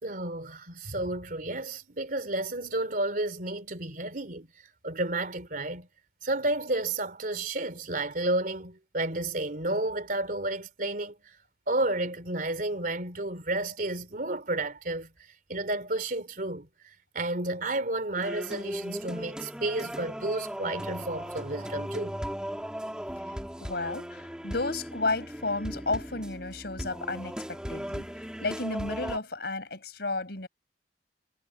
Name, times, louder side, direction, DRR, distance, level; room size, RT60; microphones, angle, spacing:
voice 1, 0.0-4.5 4.8-5.9 6.2-11.1 11.7-15.1 15.5-16.7 17.1-22.1, right 2 dB, 50° right, 3.1 m, -31 dB
sound 1, 18.1-29.2, equal, 5° right, 3.5 m, -37 dB
voice 2, 23.6-28.1 28.4-30.5, left 3 dB, 65° left, 5.5 m, -32 dB
head